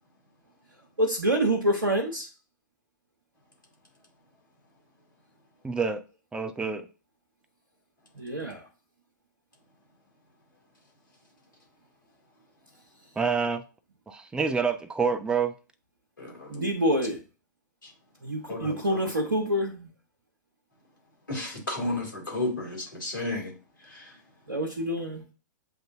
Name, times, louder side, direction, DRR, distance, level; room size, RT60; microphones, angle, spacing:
voice 1, 1.0-2.3 8.2-8.6 16.5-17.2 18.2-19.9 24.5-25.2, equal, 85° right, 0.8 m, -27 dB
voice 2, 5.6-6.0 6.3-6.9 13.2-13.6 14.1-15.5, right 5 dB, 10° right, 0.4 m, -27 dB
voice 3, 16.2-16.7 18.5-18.8 21.3-23.5 23.8-24.2, left 2 dB, 85° left, 2.4 m, -33 dB
7.8 x 2.6 x 2.6 m
figure-of-eight pair, 105°, 10 cm